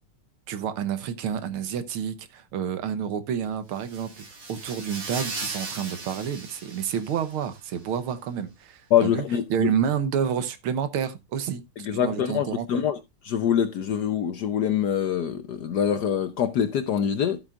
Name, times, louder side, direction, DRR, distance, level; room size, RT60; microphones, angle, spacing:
voice 1, 0.5-9.2 9.5-11.6 11.9-12.8, right 8 dB, 75° right, 1.8 m, -29 dB
sound 1, 3.7-7.6, right 3 dB, 45° right, 2.8 m, -38 dB
voice 2, 8.9-9.7 11.8-13.0 13.2-17.4, left 9 dB, 65° left, 1.1 m, -24 dB
13.5 x 7.9 x 2.4 m
omnidirectional pair, 2.4 m